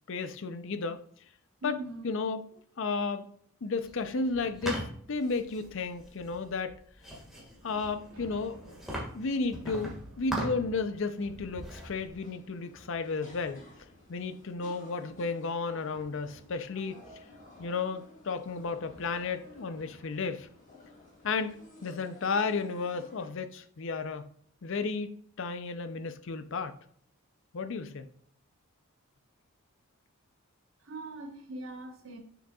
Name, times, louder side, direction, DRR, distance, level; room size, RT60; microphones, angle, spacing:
voice 1, 0.1-1.0 1.6-2.4 2.8-3.3 3.6-6.8 7.6-8.6 9.1-13.6 14.1-17.0 17.6-20.5 21.2-24.3 24.6-26.8 27.5-28.1, left 4 dB, 60° left, 0.5 m, -33 dB
voice 2, 1.6-2.1 30.8-32.2, right 1 dB, 60° right, 1.2 m, -41 dB
sound 1, 3.8-10.9 11.2-12.1, right 1 dB, ahead, 1.7 m, -40 dB
sound 2, 7.6-22.0, equal, 85° right, 2.3 m, -57 dB
sound 3, 12.1-23.3, left 2 dB, 35° left, 1.7 m, -55 dB
6.8 x 6.1 x 2.3 m
head